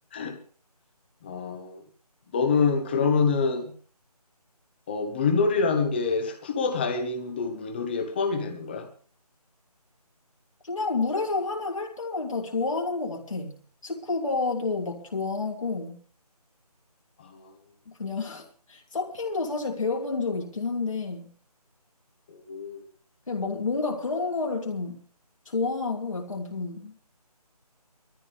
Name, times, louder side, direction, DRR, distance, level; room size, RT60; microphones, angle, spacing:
voice 1, 1.2-1.8 2.3-3.7 4.9-8.9 17.2-17.5 22.3-22.8, left 4 dB, 15° left, 1.2 m, -26 dB
voice 2, 10.6-13.6 13.8-16.0 17.9-21.3 23.3-25.0 25.5-27.0, left 3 dB, 55° left, 3.0 m, -29 dB
21.0 x 14.0 x 3.4 m
figure-of-eight pair, 160°, 20 cm